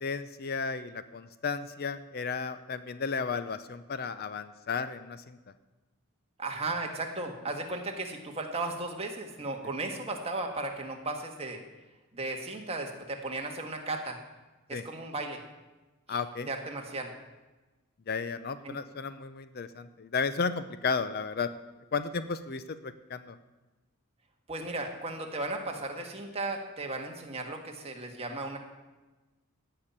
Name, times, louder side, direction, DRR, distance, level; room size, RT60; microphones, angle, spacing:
voice 1, 0.0-5.4 14.7-14.8 16.1-16.5 18.1-21.5 21.9-23.3, left 5 dB, 45° left, 12 dB, 0.5 m, -33 dB
voice 2, 6.4-11.6 12.1-14.2 14.7-15.4 16.1-17.1 18.6-18.8 24.5-28.6, right 2 dB, 25° right, 2 dB, 1.7 m, -35 dB
16.0 x 5.8 x 8.8 m, 1.1 s
head